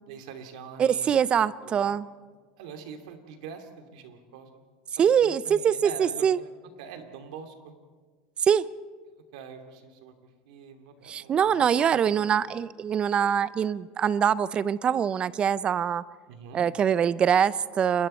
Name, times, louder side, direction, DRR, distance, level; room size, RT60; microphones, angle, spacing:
voice 1, 0.0-1.3 1.6-1.9 2.6-4.6 5.0-6.5 6.8-7.7 9.3-10.1 10.4-11.4 11.8-12.3 16.3-16.6, right 6 dB, 80° right, 6 dB, 2.7 m, -44 dB
voice 2, 0.8-2.1 5.0-6.4 8.4-8.7 11.0-16.0 16.5-18.1, right 8 dB, 30° right, 18 dB, 0.6 m, -24 dB
28.0 x 22.0 x 4.5 m, 1.5 s
supercardioid pair, 125°, 3 cm